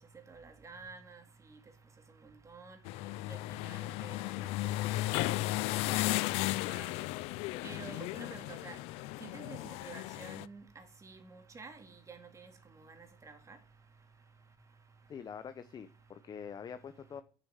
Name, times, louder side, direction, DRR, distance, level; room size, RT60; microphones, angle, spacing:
voice 1, 0.3-1.2 2.5-2.8 3.3-3.4 3.6-5.0 6.7-7.1 7.6-8.8 9.2-12.5 13.3-13.6, right 4 dB, 30° right, 2.3 m, -50 dB
sound 1, 2.9-10.5, left 18 dB, 75° left, 0.4 m, -35 dB
voice 2, 15.1-17.2, left 7 dB, 40° left, 0.8 m, -45 dB
6.8 x 6.3 x 7.1 m
supercardioid pair, 80°, 10 cm